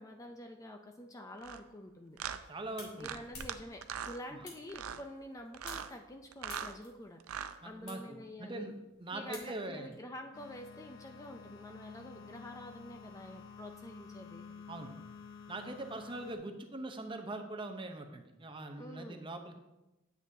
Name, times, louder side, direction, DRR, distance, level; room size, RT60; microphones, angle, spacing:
voice 1, 0.0-2.2 3.0-7.2 7.6-8.7 9.1-14.5 18.8-19.3, left 1 dB, 15° left, 4 dB, 0.4 m, -48 dB
sound 1, 1.4-1.6 2.2-2.4 3.0-3.5 3.8-4.2 4.7-5.0 5.5-5.9 6.3-6.7 7.2-7.6, right 8 dB, 85° right, 0.5 m, -40 dB
sound 2, 2.1-9.9, left 3 dB, 90° left, 3.0 m, -55 dB
voice 2, 2.5-3.1 4.3-4.5 7.6-8.7 9.0-9.9 14.7-14.9 15.5-19.6, right 2 dB, 25° right, 6 dB, 0.7 m, -42 dB
sound 3, 10.3-16.4, left 6 dB, 60° left, 0.7 m, -51 dB
9.8 x 8.1 x 2.7 m, 0.98 s
head